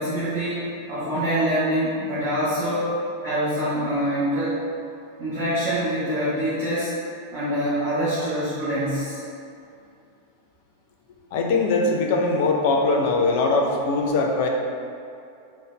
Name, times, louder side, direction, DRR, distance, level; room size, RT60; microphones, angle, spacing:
voice 1, 0.0-2.9 3.2-4.6 5.2-6.9 7.3-9.2, equal, 45° right, -11 dB, 0.9 m, -25 dB
voice 2, 11.3-14.5, left 3 dB, 50° left, 1 dB, 0.4 m, -21 dB
3.8 x 2.0 x 3.2 m, 2.5 s
figure-of-eight pair, 90°, 0 cm